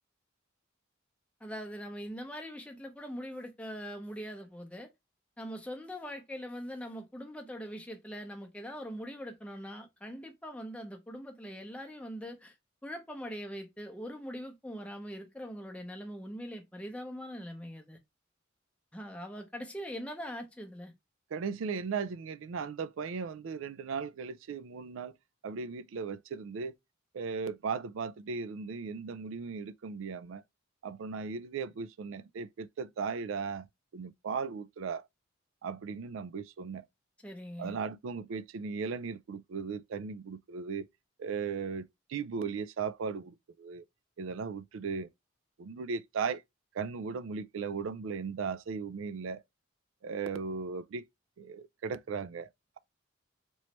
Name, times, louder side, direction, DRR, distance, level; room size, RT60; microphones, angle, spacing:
voice 1, 1.4-4.9 5.4-12.5 12.8-18.0 18.9-20.9 37.2-37.8, equal, 5° left, 0.6 m, -42 dB
voice 2, 21.3-25.1 25.4-26.7 27.1-30.4 30.8-33.7 33.9-35.0 35.6-36.8 37.6-40.9 41.2-43.8 44.2-45.1 45.6-46.4 46.7-49.4 50.0-51.1 51.4-52.5, right 5 dB, 75° right, 0.4 m, -37 dB
3.1 x 3.0 x 3.0 m
head